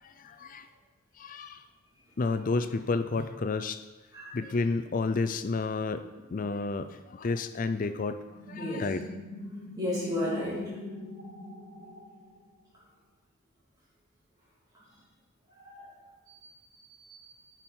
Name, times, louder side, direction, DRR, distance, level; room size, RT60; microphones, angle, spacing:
voice 1, 0.0-0.7 1.2-1.6 2.2-3.8 4.3-6.0 6.3-8.2 8.5-9.1, left 3 dB, 40° left, 11 dB, 0.4 m, -31 dB
sound 1, 8.3-12.7, left 1 dB, 55° right, 2.8 m, -42 dB
voice 2, 8.6-8.9 9.8-10.6 15.6-15.9 16.3-16.5 17.0-17.5, left 1 dB, 20° right, -9 dB, 2.9 m, -34 dB
8.9 x 6.3 x 4.4 m, 1.2 s
head